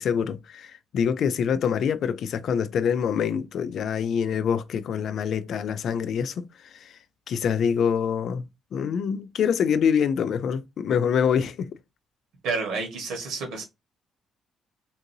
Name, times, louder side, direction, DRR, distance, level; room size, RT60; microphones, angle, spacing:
voice 1, 0.0-6.5 6.7-7.0 7.3-11.8, left 7 dB, 65° left, 0.3 m, -25 dB
voice 2, 12.4-13.6, right 4 dB, 85° right, 1.5 m, -29 dB
3.7 x 2.6 x 2.7 m
cardioid pair, 110°, 0 cm